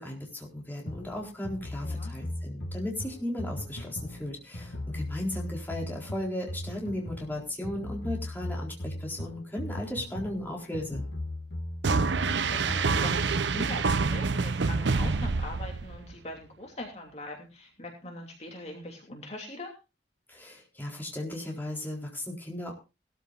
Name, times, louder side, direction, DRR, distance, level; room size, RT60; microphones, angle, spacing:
voice 1, 0.0-11.0 20.3-22.7, left 1 dB, 10° left, -1 dB, 4.0 m, -36 dB
sound 1, 0.9-13.3, left 1 dB, 80° left, 1.6 m, -38 dB
voice 2, 1.8-2.1 11.9-19.7, left 1 dB, 35° left, 1 dB, 2.9 m, -42 dB
sound 2, 11.8-16.1, right 4 dB, 75° right, 0.7 m, -27 dB
20.0 x 13.5 x 2.5 m, 0.29 s
head